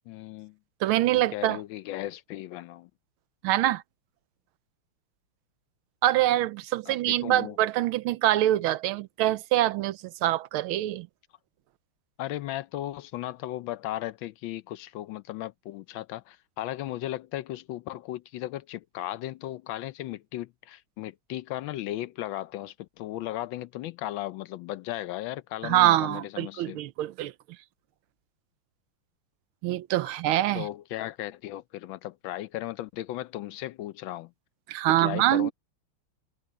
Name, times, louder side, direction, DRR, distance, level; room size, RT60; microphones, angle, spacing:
voice 1, 0.1-0.6 1.1-2.9 6.9-7.6 12.2-26.8 30.5-34.3 35.0-35.5, left 14 dB, 75° left, 1.3 m, -36 dB
voice 2, 0.8-1.6 3.4-3.8 6.0-11.1 25.6-27.3 29.6-30.7 34.7-35.5, right 14 dB, 80° right, 1.5 m, -25 dB
omnidirectional pair, 2.3 m